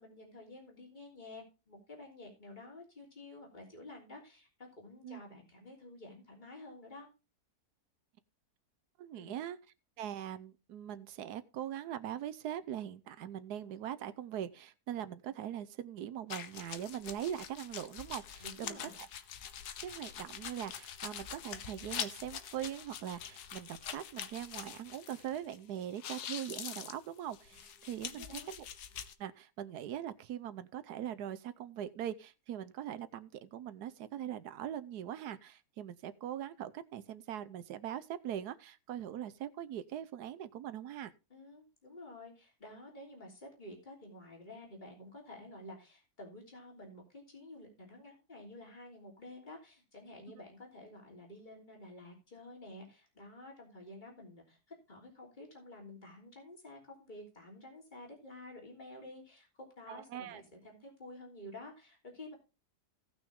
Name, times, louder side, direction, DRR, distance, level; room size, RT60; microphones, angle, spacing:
voice 1, 0.0-7.1 9.1-9.3 18.4-19.0 28.1-28.5 41.3-62.3, left 1 dB, 30° left, 3.5 m, -51 dB
voice 2, 9.0-9.6 10.0-19.1 19.8-28.7 29.2-41.1 59.9-60.4, right 10 dB, 85° right, 1.3 m, -41 dB
sound 1, 16.3-25.6 25.8-29.1, left 9 dB, 85° left, 1.4 m, -44 dB
17.0 x 6.2 x 3.5 m
omnidirectional pair, 1.7 m